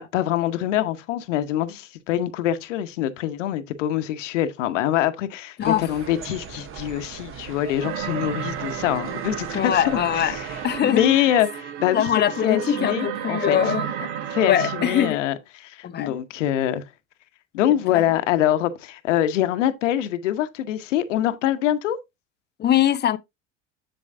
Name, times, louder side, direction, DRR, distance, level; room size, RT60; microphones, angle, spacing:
voice 1, 0.0-12.1 12.4-13.6 14.3-16.8 17.5-22.0, left 11 dB, 75° left, 0.9 m, -24 dB
sound 1, 5.6-10.8, right 8 dB, 35° right, 0.9 m, -39 dB
sound 2, 7.8-15.1, right 8 dB, 70° right, 1.1 m, -32 dB
voice 2, 9.5-10.4 10.6-11.1 11.9-14.1 14.5-15.2 15.8-16.2 17.9-18.0 22.6-23.2, left 10 dB, 30° left, 0.6 m, -22 dB
7.7 x 7.0 x 2.5 m
hypercardioid pair, 80°, 37 cm